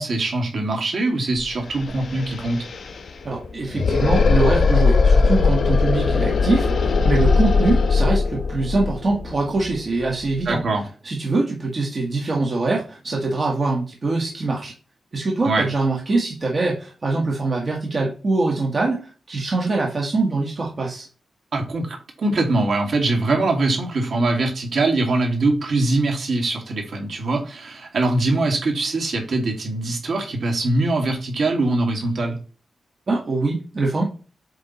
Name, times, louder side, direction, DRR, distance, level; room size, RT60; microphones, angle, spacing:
voice 1, 0.0-2.7 10.5-10.8 15.4-15.7 21.5-32.4, right 2 dB, 60° right, 2 dB, 2.1 m, -22 dB
sound 1, 1.4-1.5 1.7-10.5, left 4 dB, 60° left, 1.1 m, -20 dB
voice 2, 3.2-10.6 11.0-14.7 15.1-21.1 33.1-34.0, right 3 dB, 40° right, -1 dB, 1.5 m, -23 dB
8.0 x 3.5 x 4.1 m, 0.36 s
wide cardioid pair, 105°, 0 cm